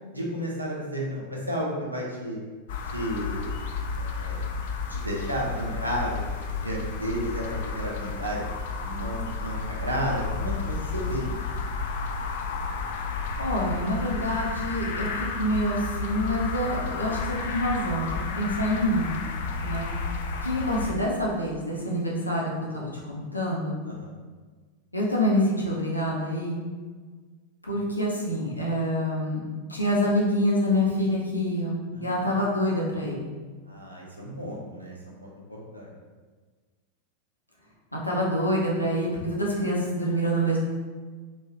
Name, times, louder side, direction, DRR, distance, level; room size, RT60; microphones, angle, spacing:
voice 1, 0.1-2.4 2.9-3.5 4.0-4.4 4.9-6.2 6.6-8.4 8.8-11.3 23.8-24.1 31.9-32.1 33.7-35.9, equal, 85° right, -3 dB, 0.7 m, -32 dB
sound 1, 2.7-20.9, left 4 dB, 55° left, 0.3 m, -32 dB
voice 2, 13.4-19.2 19.6-19.9 20.4-23.8 24.9-26.6 27.7-33.2 37.9-40.6, equal, 85° left, -4 dB, 0.7 m, -26 dB
3.1 x 2.7 x 2.9 m, 1.4 s
figure-of-eight pair, 90°, 0 cm